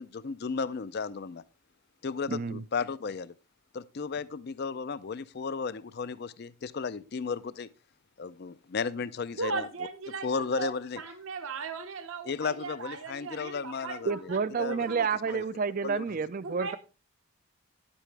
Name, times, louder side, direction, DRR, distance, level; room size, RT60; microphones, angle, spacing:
voice 1, 0.0-1.4 2.0-3.3 3.7-7.7 8.2-9.7 10.2-11.0 12.2-14.1 14.6-15.0 15.3-15.4 15.8-16.0, left 5 dB, 45° left, 0.4 m, -34 dB
voice 2, 2.3-2.6 14.1-16.8, right 5 dB, 40° right, 0.4 m, -30 dB
voice 3, 9.4-15.1 16.4-16.8, right 4 dB, 70° right, 0.9 m, -38 dB
9.9 x 8.4 x 3.3 m
head